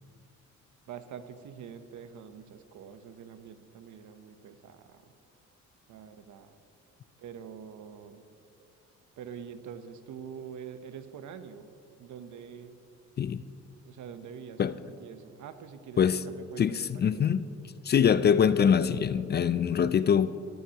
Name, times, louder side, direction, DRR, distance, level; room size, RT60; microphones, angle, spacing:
voice 1, 0.9-5.1 5.9-6.6 7.2-8.2 9.2-11.7 12.0-12.8 13.8-16.8 17.0-17.3, right 7 dB, 75° right, 0.9 m, -45 dB
voice 2, 16.6-17.4 17.9-20.4, left 7 dB, 35° left, 0.4 m, -24 dB
18.0 x 12.0 x 2.9 m
cardioid pair, 90°, 30 cm